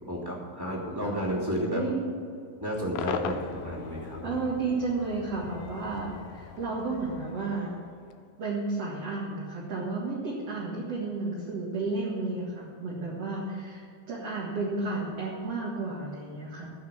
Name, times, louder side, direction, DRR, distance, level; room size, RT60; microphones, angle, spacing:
voice 1, 0.0-1.8 2.6-4.4, equal, 5° right, -6 dB, 2.3 m, -32 dB
voice 2, 1.7-2.0 4.2-7.8 8.4-16.7, right 3 dB, 50° right, -5 dB, 2.6 m, -32 dB
Cheering / Crowd / Fireworks, 3.0-8.2, left 8 dB, 80° left, 2.1 m, -40 dB
15.0 x 5.7 x 8.8 m, 2.3 s
omnidirectional pair, 4.0 m